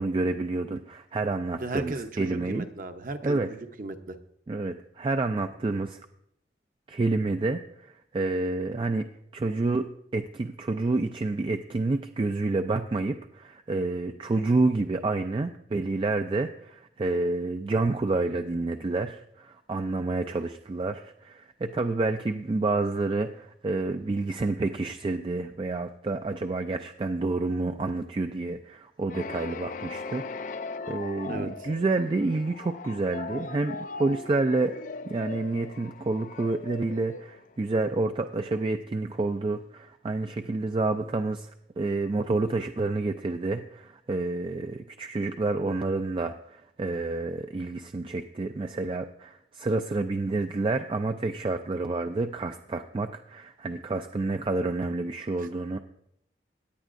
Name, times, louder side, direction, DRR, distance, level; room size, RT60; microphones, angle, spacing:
voice 1, 0.0-2.7 3.2-3.5 4.5-6.0 6.9-9.1 9.3-9.9 10.1-34.7 35.1-55.8, right 3 dB, 30° right, 7 dB, 0.3 m, -29 dB
voice 2, 1.6-3.4 3.8-4.2 31.2-31.7 55.4-55.5, right 2 dB, 50° right, 7 dB, 0.8 m, -36 dB
sound 1, 29.1-37.8, left 4 dB, 50° left, 0.3 m, -39 dB
17.0 x 9.8 x 2.6 m, 0.76 s
head